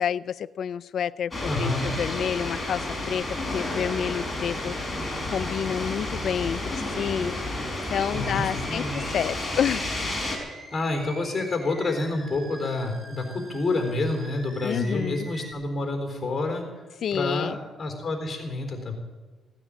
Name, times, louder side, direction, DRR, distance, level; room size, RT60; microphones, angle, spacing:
voice 1, 0.0-3.2 3.5-4.7 5.3-7.3 7.9-9.8 14.6-15.3 17.0-17.6, left 8 dB, 60° left, 18 dB, 0.5 m, -29 dB
sound 1, 1.3-10.4, left 1 dB, 15° left, 4.5 m, -31 dB
voice 2, 1.4-1.9 8.1-9.0 10.7-16.6 17.1-18.9, left 2 dB, 30° left, 4 dB, 4.1 m, -28 dB
Animal, 7.5-15.5, right 1 dB, 20° right, 3.2 m, -45 dB
17.0 x 9.8 x 8.6 m, 1.3 s
cardioid pair, 90°, 0 cm